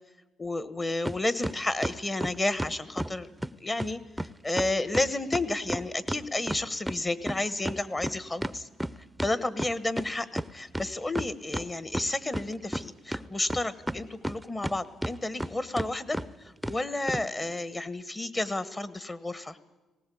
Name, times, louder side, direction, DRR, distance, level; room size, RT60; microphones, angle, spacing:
voice 1, 0.4-3.3 3.6-8.7 9.2-19.6, left 2 dB, 25° left, 15 dB, 1.2 m, -31 dB
sound 1, 1.1-1.2 1.4-3.1 3.4-3.5 3.8-3.9 4.2-4.3 4.6-7.0 7.3-10.1 10.4-10.5 10.7-11.7 11.9-12.8 13.1-14.7 15.0-15.5 15.8-15.9 16.1-16.3 16.6-16.8 17.1-17.2, right 1 dB, 5° right, 0.6 m, -32 dB
19.0 x 17.5 x 8.5 m, 1.2 s
cardioid pair, 80°, 0 cm